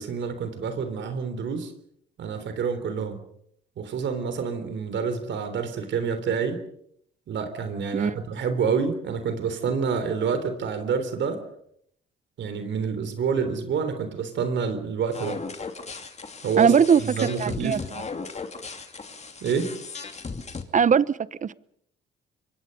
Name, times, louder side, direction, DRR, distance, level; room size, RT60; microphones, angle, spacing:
voice 1, 0.0-1.7 2.2-3.2 3.8-6.6 7.3-11.4 12.4-15.4 16.4-16.7 17.0-17.8 19.4-19.8, right 6 dB, 65° right, 9 dB, 3.5 m, -28 dB
sound 1, 15.1-20.6, left 4 dB, 35° left, 2.6 m, -37 dB
voice 2, 16.6-17.0 17.4-17.8 20.7-21.5, right 7 dB, 40° right, 18 dB, 0.9 m, -20 dB
27.0 x 23.5 x 5.4 m, 0.70 s
cardioid pair, 90°, 20 cm